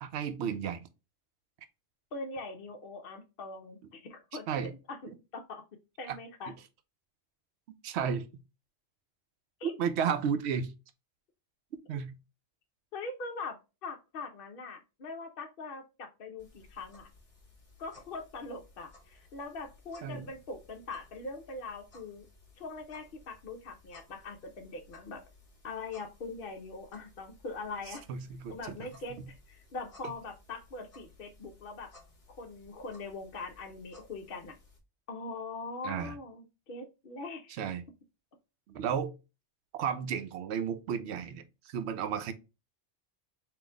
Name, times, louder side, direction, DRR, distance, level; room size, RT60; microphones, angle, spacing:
voice 1, 0.0-0.9 4.5-4.7 5.1-5.2 6.1-6.2 7.8-8.2 9.6-10.7 11.9-12.1 20.0-20.3 28.1-28.8 30.0-30.1 35.8-36.2 37.6-37.8 38.7-39.1 39.7-42.3, right 7 dB, 70° right, 0.8 m, -33 dB
voice 2, 2.1-4.4 4.9-5.6 6.0-6.5 9.6-9.7 12.9-13.6 13.8-17.1 17.8-22.3 22.6-25.2 25.6-28.0 28.5-31.9 32.4-34.5 35.1-37.6, left 3 dB, 60° left, 0.7 m, -42 dB
sound 1, 16.4-34.8, left 2 dB, 30° left, 1.2 m, -59 dB
3.9 x 2.4 x 3.3 m
omnidirectional pair, 1.2 m